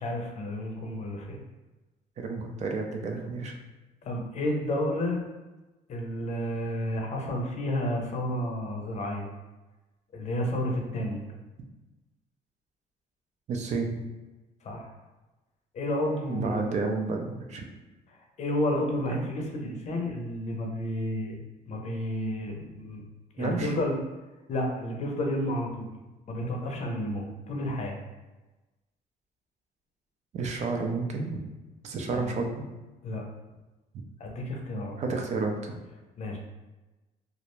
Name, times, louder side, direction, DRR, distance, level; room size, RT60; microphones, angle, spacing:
voice 1, 0.0-1.4 4.0-5.3 5.9-9.3 10.1-11.3 14.6-14.9 15.7-16.6 18.1-21.4 21.7-23.0 23.3-24.0 24.5-25.9 26.3-28.0 32.1-32.3 33.0-33.2 34.2-35.0 36.2-36.4, left 1 dB, 40° left, 1 dB, 0.5 m, -31 dB
voice 2, 2.2-3.5 13.5-14.0 16.3-17.6 23.4-23.7 30.3-31.4 31.8-32.7 35.0-35.8, right 3 dB, 45° right, 3 dB, 0.4 m, -31 dB
2.4 x 2.0 x 3.0 m, 1.1 s
cardioid pair, 110°, 17 cm